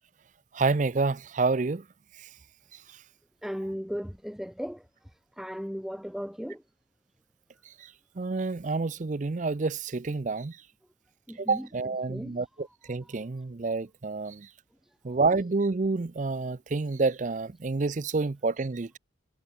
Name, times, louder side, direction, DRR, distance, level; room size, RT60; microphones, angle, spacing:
voice 1, 0.5-1.8 8.2-10.6 11.4-14.5 15.0-19.0, right 3 dB, 40° right, 0.5 m, -28 dB
voice 2, 3.4-6.6 11.3-11.7 12.1-12.4 12.6-13.1 14.8-15.2, equal, ahead, 1.9 m, -37 dB
head